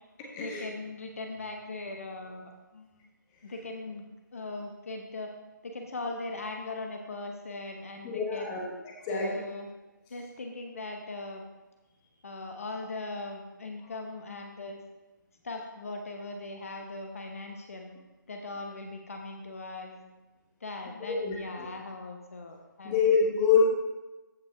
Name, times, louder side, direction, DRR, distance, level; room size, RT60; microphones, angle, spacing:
voice 1, 0.4-2.9 3.4-4.1 4.3-5.3 5.6-8.6 9.1-9.7 10.1-11.4 12.2-14.8 15.4-17.9 18.3-20.0 20.6-23.0, left 2 dB, 45° left, 4 dB, 1.0 m, -39 dB
voice 2, 8.0-8.7 9.0-9.4 21.0-21.7 22.8-23.6, left 6 dB, 15° left, -2 dB, 1.2 m, -26 dB
14.5 x 5.3 x 3.4 m, 1.1 s
figure-of-eight pair, 155°, 11 cm